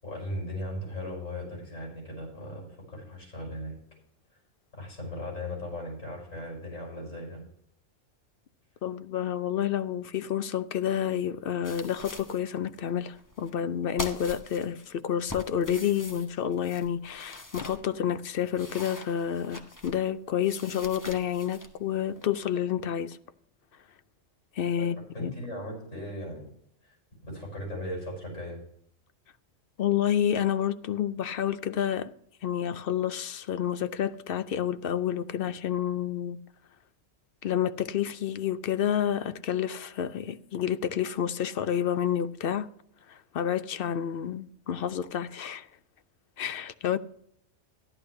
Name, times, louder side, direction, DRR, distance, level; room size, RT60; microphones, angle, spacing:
voice 1, 0.0-3.8 4.8-7.4 24.8-26.5 26.8-27.0 27.2-28.6, left 1 dB, 80° left, 6.5 m, -37 dB
voice 2, 8.8-23.2 24.6-25.3 29.8-32.1 32.4-36.4 37.4-42.7 43.1-45.7 46.4-47.0, left 9 dB, 60° left, 0.6 m, -29 dB
sound 1, 11.6-12.4 12.8-12.9 13.1-13.7 14.0-14.9 15.3-17.8 18.3-20.1 20.4-22.6, left 1 dB, 15° left, 1.0 m, -43 dB
14.0 x 11.5 x 3.2 m
omnidirectional pair, 1.3 m